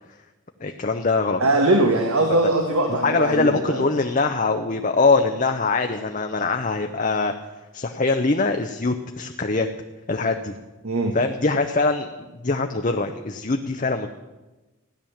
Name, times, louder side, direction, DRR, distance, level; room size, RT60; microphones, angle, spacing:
voice 1, 0.6-1.4 3.0-7.3 7.7-9.7 10.1-10.6 11.1-14.1, left 3 dB, 35° left, 5 dB, 0.6 m, -23 dB
voice 2, 1.4-3.8 10.8-11.2, right 2 dB, 85° right, 4 dB, 1.6 m, -21 dB
16.0 x 10.5 x 7.2 m, 1.1 s
head